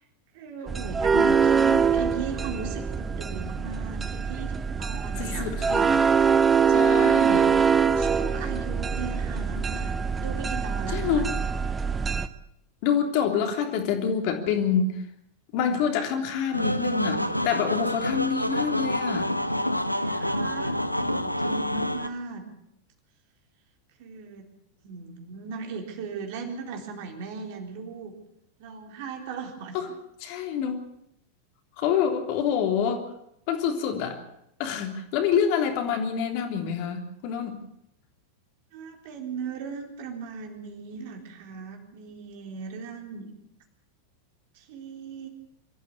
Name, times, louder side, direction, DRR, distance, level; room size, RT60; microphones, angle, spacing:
voice 1, 0.3-5.5 6.6-7.3 7.8-11.3 19.9-22.4 24.0-24.5 24.8-28.2 28.6-29.8 38.7-43.3 44.5-45.3, right 5 dB, 50° right, 3 dB, 4.1 m, -38 dB
sound 1, 0.7-12.3, right 6 dB, 15° right, 1.0 m, -24 dB
voice 2, 5.2-6.0 6.7-7.6 10.9-11.3 12.8-15.0 15.5-19.3 29.7-29.9 30.2-30.8 31.8-33.0 33.5-34.2 34.6-37.7, left 7 dB, 45° left, 4 dB, 3.3 m, -27 dB
sound 2, 16.5-22.1, left 1 dB, 90° left, 1.1 m, -27 dB
24.5 x 13.5 x 8.5 m, 0.76 s
figure-of-eight pair, 90°, 0 cm